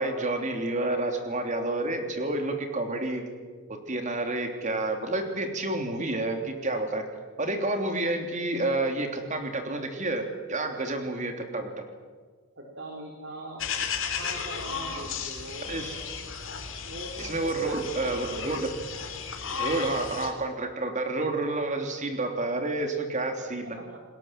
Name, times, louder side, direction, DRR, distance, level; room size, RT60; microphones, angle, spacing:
voice 1, 0.0-3.2 3.7-7.0 7.4-11.8 15.6-16.0 17.2-18.7 19.6-23.8, right 2 dB, 35° right, 5 dB, 3.2 m, -29 dB
voice 2, 12.6-13.6 14.0-16.0 16.8-18.3 19.5-19.9 23.6-24.0, right 1 dB, 55° right, 1 dB, 4.0 m, -42 dB
sound 1, 13.6-20.3, left 6 dB, 55° left, 3.5 m, -34 dB
29.0 x 20.5 x 7.6 m, 1.5 s
head